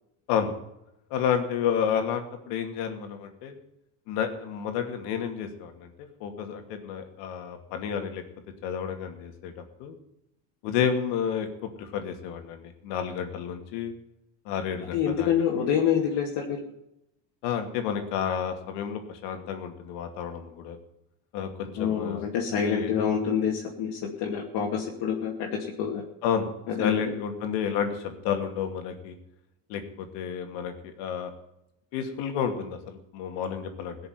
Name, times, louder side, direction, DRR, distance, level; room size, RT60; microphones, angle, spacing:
voice 1, 1.1-3.6 4.1-5.9 6.2-8.2 8.6-9.5 9.8-10.0 10.6-11.5 11.8-13.9 14.4-15.3 17.4-20.8 21.3-22.2 22.6-22.9 26.2-26.5 26.8-29.2 29.7-31.3 31.9-34.0, left 8 dB, 80° left, 5 dB, 2.6 m, -30 dB
voice 2, 14.9-16.6 21.8-26.0 26.7-27.1, left 8 dB, 65° left, -2 dB, 2.6 m, -27 dB
17.0 x 6.8 x 9.6 m, 0.84 s
cardioid pair, 115°, 41 cm